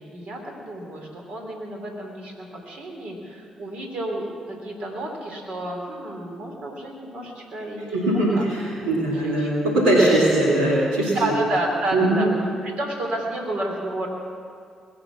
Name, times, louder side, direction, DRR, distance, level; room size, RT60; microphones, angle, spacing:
voice 1, 0.0-8.1 8.3-8.4 9.1-9.6 11.1-12.3 12.6-14.1, right 1 dB, 60° right, 1 dB, 3.3 m, -31 dB
voice 2, 7.9-11.3 11.9-12.2, right 1 dB, 90° right, -6 dB, 2.7 m, -20 dB
21.0 x 8.8 x 7.2 m, 2.3 s
hypercardioid pair, 45°, 2 cm